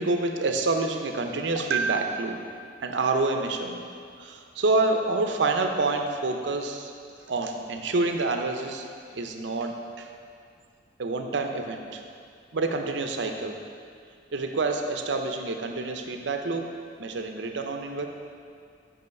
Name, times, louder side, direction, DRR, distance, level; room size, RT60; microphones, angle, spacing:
voice 1, 0.0-2.5 2.8-3.9 4.2-6.9 7.3-10.1 11.0-12.0 12.5-13.6 14.3-16.7 17.0-18.1, right 3 dB, 65° right, 4 dB, 0.6 m, -27 dB
5.5 x 5.5 x 5.3 m, 2.3 s
head